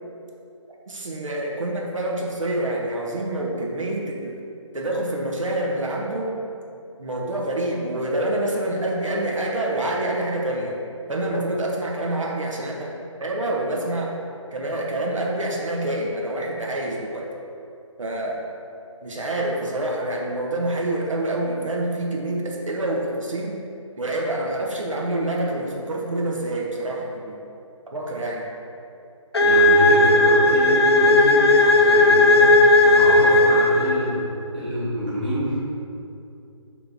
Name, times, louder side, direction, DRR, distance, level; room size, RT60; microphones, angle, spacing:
voice 1, 0.9-4.3 4.7-6.4 7.0-10.7 11.1-12.9 13.2-14.1 14.5-17.3 18.0-18.4 19.0-23.6 24.0-27.4 27.9-28.4, right 1 dB, 75° right, -2 dB, 1.5 m, -27 dB
sound 1, 29.3-34.2, left 2 dB, 50° left, 0.6 m, -15 dB
voice 2, 29.4-34.2 34.5-35.5, right 1 dB, 15° right, -10 dB, 1.2 m, -27 dB
7.7 x 3.4 x 6.1 m, 2.6 s
hypercardioid pair, 180°, 17 cm